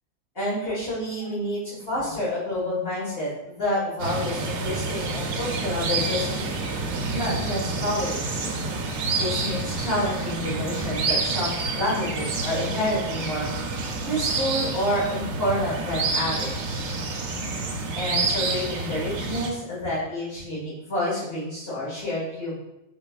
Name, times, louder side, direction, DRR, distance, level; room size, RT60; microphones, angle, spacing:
voice 1, 0.3-6.6 7.1-8.5 9.1-13.5 14.0-17.0 17.9-22.5, left 1 dB, 60° left, -10 dB, 1.7 m, -29 dB
sound 1, 4.0-19.5, right 3 dB, 80° right, 0.9 m, -28 dB
4.1 x 3.8 x 2.3 m, 0.89 s
omnidirectional pair, 1.2 m